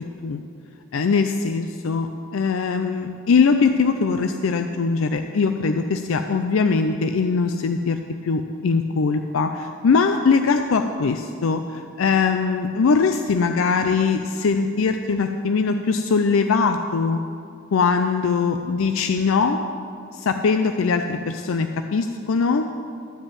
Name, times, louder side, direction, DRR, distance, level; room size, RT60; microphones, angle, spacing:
voice 1, 0.9-17.2 17.7-19.6 20.1-22.7, left 5 dB, 75° left, 7 dB, 0.4 m, -21 dB
12.5 x 5.3 x 8.5 m, 2.5 s
head